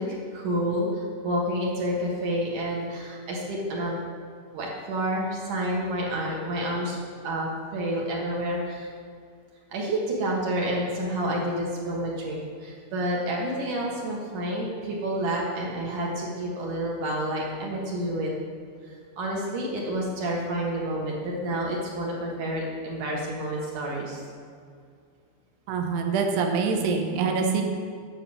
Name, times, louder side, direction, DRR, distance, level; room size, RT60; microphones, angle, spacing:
voice 1, 0.0-4.0 4.5-7.0 7.2-8.9 9.7-18.3 19.2-24.2, right 1 dB, 60° right, -3 dB, 2.6 m, -29 dB
voice 2, 25.7-27.6, right 5 dB, 85° right, 3 dB, 3.1 m, -25 dB
9.7 x 6.1 x 8.3 m, 2.2 s
omnidirectional pair, 4.7 m